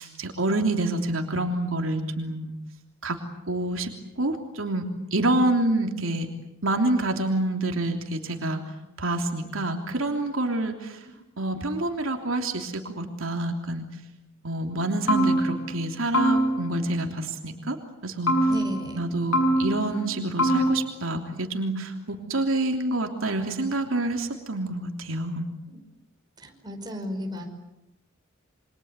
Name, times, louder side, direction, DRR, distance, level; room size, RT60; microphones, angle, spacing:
voice 1, 0.0-2.6 3.0-3.2 3.5-3.9 4.2-4.8 5.1-6.3 6.6-8.6 9.0-11.0 11.4-13.8 14.4-17.8 18.0-18.3 19.0-25.5, right 2 dB, 75° right, 3 dB, 3.2 m, -27 dB
sound 1, 14.7-14.8 15.1-15.8 16.1-16.8 18.3-19.0 19.3-20.0 20.4-20.9, right 1 dB, 80° left, 6.9 m, -23 dB
voice 2, 18.5-19.0 25.7-25.8 26.4-27.4, equal, 20° right, 3 dB, 5.2 m, -34 dB
28.5 x 25.0 x 8.2 m, 0.94 s
head